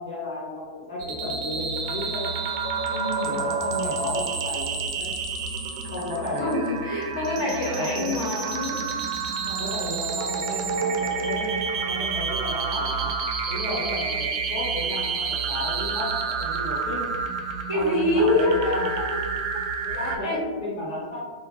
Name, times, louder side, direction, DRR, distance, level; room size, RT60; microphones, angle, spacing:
voice 1, 0.0-2.3 3.2-5.1 5.8-6.6 7.3-8.2 9.5-11.5 11.8-13.1 13.5-17.0 17.7-18.9 19.8-21.2, left 1 dB, 80° left, -7 dB, 1.0 m, -33 dB
sound 1, 1.0-20.2, right 5 dB, 60° right, 0.5 m, -29 dB
voice 2, 2.8-3.3 6.3-8.8 17.7-19.0 19.5-19.6 19.9-20.4, left 1 dB, 55° left, -5 dB, 1.5 m, -26 dB
3.6 x 2.1 x 2.6 m, 1.5 s
hypercardioid pair, 135°, 3 cm